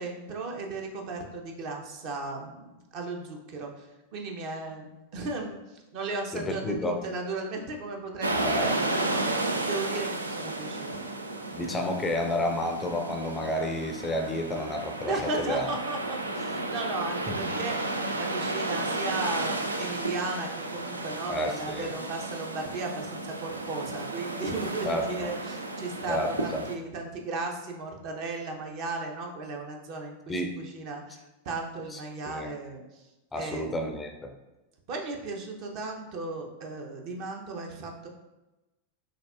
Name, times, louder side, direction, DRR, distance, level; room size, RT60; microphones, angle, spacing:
voice 1, 0.0-11.0 15.1-33.0 33.4-33.8 34.9-38.1, right 3 dB, 45° right, 2 dB, 0.7 m, -36 dB
voice 2, 6.3-7.0 8.3-8.7 11.5-15.7 17.3-17.4 21.3-21.9 24.8-25.3 26.1-26.3 30.3-30.5 31.9-32.0 32.3-32.5 33.3-34.3, left 1 dB, 15° left, 4 dB, 0.4 m, -30 dB
sound 1, 8.2-26.8, right 2 dB, 80° right, 0.4 m, -33 dB
5.8 x 2.7 x 2.3 m, 1.0 s
figure-of-eight pair, 90°, 0 cm